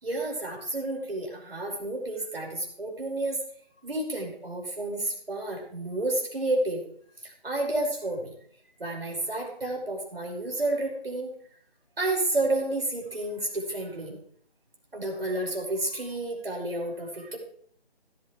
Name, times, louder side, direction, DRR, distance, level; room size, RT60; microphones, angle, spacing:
voice 1, 0.0-3.4 3.8-6.8 7.2-8.3 8.8-11.3 12.0-14.2 14.9-17.4, right 2 dB, 65° right, 0 dB, 5.1 m, -30 dB
17.0 x 13.5 x 3.2 m, 0.62 s
figure-of-eight pair, 165°, 31 cm